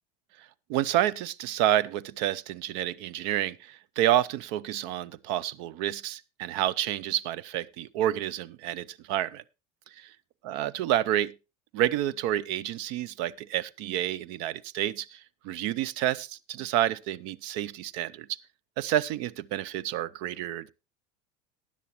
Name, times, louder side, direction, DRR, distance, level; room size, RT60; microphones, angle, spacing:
voice 1, 0.7-9.4 10.0-10.1 10.4-11.3 11.7-18.4 18.8-20.7, right 12 dB, 65° right, 0.7 m, -29 dB
15.5 x 10.0 x 3.0 m
supercardioid pair, 105°, 20 cm